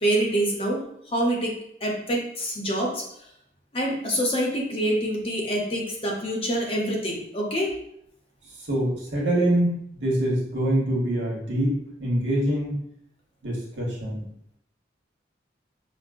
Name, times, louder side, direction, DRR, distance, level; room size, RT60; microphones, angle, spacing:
voice 1, 0.0-1.5 1.8-3.0 3.7-7.8, right 1 dB, 30° left, -1 dB, 0.7 m, -26 dB
voice 2, 8.7-12.7 13.4-14.2, right 1 dB, 80° right, -4 dB, 1.2 m, -25 dB
5.2 x 2.1 x 2.5 m, 0.73 s
head